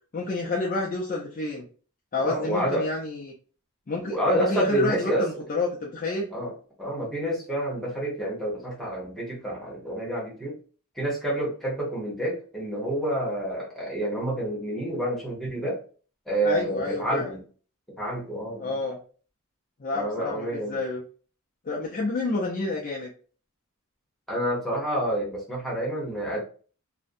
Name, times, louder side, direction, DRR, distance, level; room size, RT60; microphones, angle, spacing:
voice 1, 0.1-1.7 2.1-3.3 3.9-6.3 16.4-17.3 18.6-19.0 19.8-21.0 21.7-23.1, left 3 dB, 35° left, -3 dB, 0.4 m, -29 dB
voice 2, 2.2-2.9 3.9-5.3 6.3-10.6 10.9-15.8 16.3-17.4 18.0-18.8 19.9-20.8 24.3-26.4, right 1 dB, ahead, -5 dB, 0.9 m, -28 dB
2.5 x 2.1 x 2.5 m, 0.40 s
head